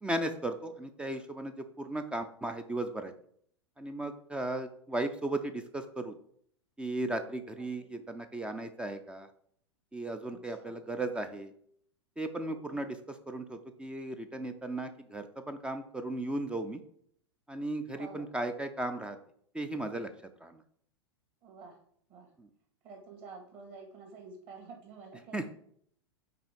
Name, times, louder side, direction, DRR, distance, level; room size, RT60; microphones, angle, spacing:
voice 1, 0.0-3.1 3.8-6.1 6.8-9.3 9.9-11.5 12.2-16.8 17.5-19.2 19.5-20.1 20.4-20.6 22.4-22.5 25.3-25.4, right 2 dB, 5° right, 8 dB, 0.4 m, -36 dB
voice 2, 7.6-8.0 10.3-11.0 12.4-12.9 17.9-18.3 21.4-21.8 22.1-22.3 22.8-25.6, right 4 dB, 40° right, 3 dB, 2.0 m, -50 dB
5.8 x 4.3 x 5.1 m, 0.64 s
figure-of-eight pair, 95°, 15 cm